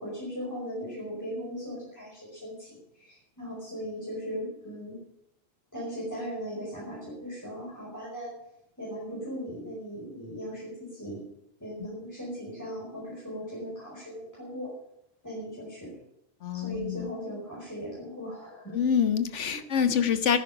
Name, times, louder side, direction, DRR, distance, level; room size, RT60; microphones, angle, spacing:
voice 1, 0.0-5.0 5.7-8.3 8.8-11.2 11.6-14.7 15.2-15.9 16.5-18.8 19.5-19.6, equal, 15° left, -6 dB, 5.0 m, -38 dB
voice 2, 16.4-17.1 18.7-20.4, left 7 dB, 65° left, 10 dB, 1.3 m, -26 dB
10.5 x 10.5 x 8.7 m, 0.76 s
omnidirectional pair, 1.3 m